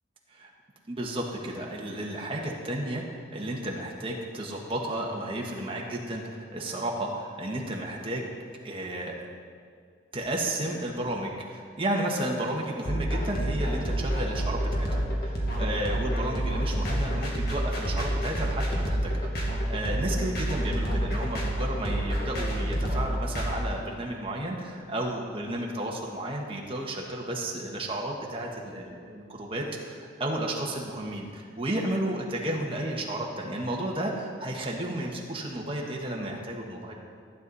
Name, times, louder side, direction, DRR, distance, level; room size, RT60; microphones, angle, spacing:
voice 1, 0.9-8.3 8.6-9.1 10.1-14.9 15.2-36.9, right 1 dB, 30° right, -1 dB, 1.5 m, -32 dB
sound 1, 12.9-23.5, right 1 dB, 55° left, 2.2 m, -28 dB
15.0 x 9.4 x 4.2 m, 2.1 s
head